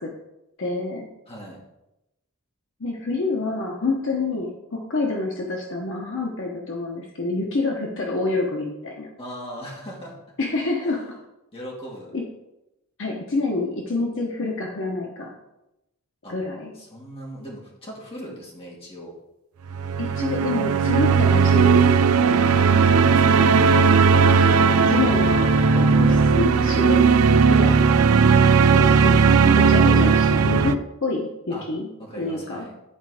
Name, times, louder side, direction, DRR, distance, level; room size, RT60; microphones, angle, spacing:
voice 1, 0.6-1.1 2.8-9.1 10.4-11.2 12.1-12.2 13.0-15.3 16.3-16.7 20.0-22.4 24.6-27.1 27.5-27.8 28.7-29.2 29.4-31.9 32.2-32.7, left 3 dB, 55° left, 0 dB, 1.0 m, -27 dB
voice 2, 1.3-1.6 9.2-10.2 10.8-11.1 11.5-12.1 16.2-16.4 16.8-19.2 22.4-23.5 31.5-31.7 32.0-32.7, equal, 25° left, -3 dB, 2.1 m, -39 dB
sound 1, 19.7-30.7, right 5 dB, 75° right, 0.4 m, -17 dB
Wind instrument woodwind instrument, 22.8-27.8, left 4 dB, 30° right, 1.0 m, -31 dB
10.0 x 4.7 x 4.9 m, 0.92 s
head